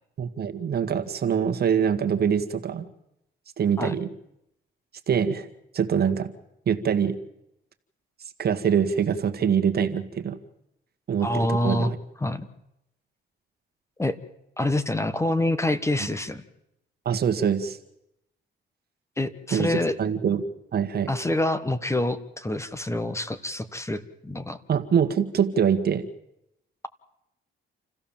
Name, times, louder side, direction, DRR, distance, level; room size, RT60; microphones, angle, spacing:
voice 1, 0.2-2.9 3.6-4.1 5.1-5.5 5.7-6.3 6.7-7.2 8.4-10.4 11.1-12.0 17.1-17.8 19.5-20.4 20.7-21.1 24.7-26.0, right 7 dB, 50° right, 7 dB, 1.8 m, -24 dB
voice 2, 11.2-11.9 12.2-12.5 14.0-14.2 14.6-16.4 19.2-19.9 21.1-24.6, left 1 dB, 15° left, 12 dB, 1.4 m, -26 dB
28.0 x 15.0 x 7.4 m, 0.84 s
cardioid pair, 90°, 20 cm